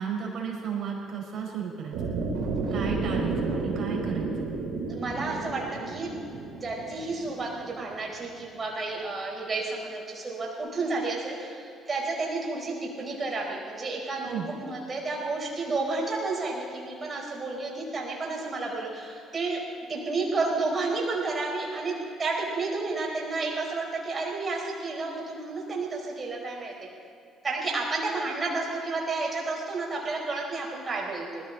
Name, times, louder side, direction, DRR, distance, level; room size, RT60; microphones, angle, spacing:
voice 1, 0.0-2.1 2.7-4.6 14.2-14.5, right 6 dB, 60° right, 0 dB, 4.8 m, -34 dB
sound 1, 1.9-8.0, right 3 dB, 75° right, 3.1 m, -32 dB
voice 2, 4.9-6.1 6.6-19.6 19.9-26.7 27.4-31.4, right 3 dB, 35° right, -2 dB, 4.9 m, -31 dB
19.5 x 15.0 x 4.2 m, 2.5 s
hypercardioid pair, 60°, 0 cm